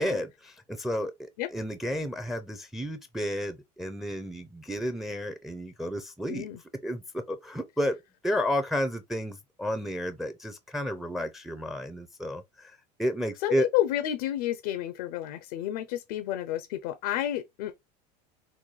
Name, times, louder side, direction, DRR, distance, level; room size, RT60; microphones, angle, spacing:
voice 1, 0.0-6.5 6.8-8.0 8.2-12.7 13.0-13.7, equal, ahead, 0.4 m, -32 dB
voice 2, 6.3-6.6 13.4-17.7, left 12 dB, 75° left, 0.5 m, -30 dB
4.0 x 2.2 x 3.0 m
supercardioid pair, 110°, 21 cm